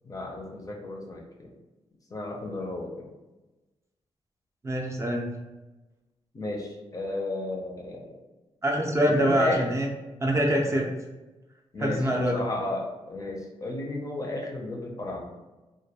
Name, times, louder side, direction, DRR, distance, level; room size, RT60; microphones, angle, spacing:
voice 1, 0.0-1.5 2.1-3.1 6.3-8.1 9.1-9.6 11.7-15.3, left 2 dB, 30° left, 0 dB, 0.5 m, -34 dB
voice 2, 4.6-5.3 8.6-9.9 10.2-10.9 11.8-12.4, equal, 25° right, -1 dB, 0.5 m, -24 dB
2.2 x 2.1 x 2.8 m, 1.1 s
cardioid pair, 105°, 11 cm